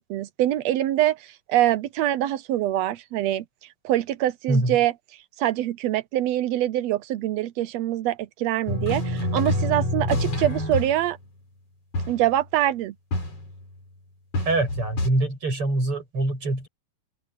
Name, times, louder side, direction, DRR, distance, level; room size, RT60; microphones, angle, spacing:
voice 1, 0.0-3.4 3.8-4.9 5.4-11.2 12.1-12.9, right 13 dB, 75° right, 1.7 m, -24 dB
sound 1, 8.7-11.1 11.9-12.3 13.1-13.6 14.3-15.1, left 1 dB, 55° left, 8.1 m, -27 dB
voice 2, 14.5-16.7, right 2 dB, 45° right, 8.8 m, -24 dB
open air
omnidirectional pair, 3.4 m